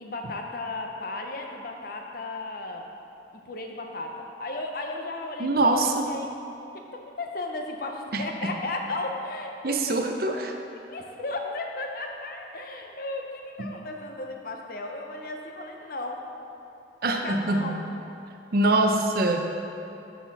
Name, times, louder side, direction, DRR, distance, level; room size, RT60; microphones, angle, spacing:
voice 1, 0.0-2.8 3.3-6.3 6.9-9.9 10.9-16.5 17.2-17.8 18.7-18.8, left 2 dB, 55° left, 2 dB, 0.7 m, -35 dB
voice 2, 5.4-6.1 8.1-8.5 9.6-10.5 13.6-13.7 17.0-17.8 18.5-19.4, right 2 dB, 55° right, 4 dB, 0.6 m, -24 dB
12.5 x 4.3 x 4.1 m, 2.9 s
head